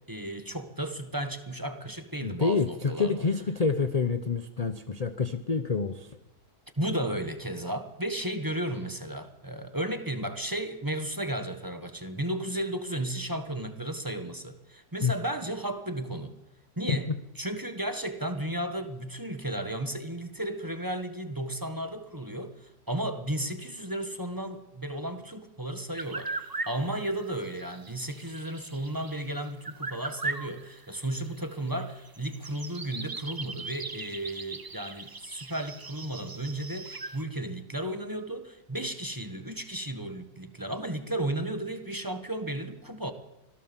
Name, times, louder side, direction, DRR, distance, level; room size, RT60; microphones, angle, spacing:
voice 1, 0.1-3.2 4.6-4.7 6.8-16.3 16.8-17.1 17.4-43.1, right 1 dB, 15° right, 8 dB, 1.6 m, -34 dB
voice 2, 2.2-6.1 15.0-15.1, left 4 dB, 30° left, 10 dB, 0.8 m, -27 dB
sound 1, 25.9-37.2, right 3 dB, 30° right, 0.4 m, -39 dB
25.5 x 17.0 x 7.4 m, 0.92 s
omnidirectional pair, 1.7 m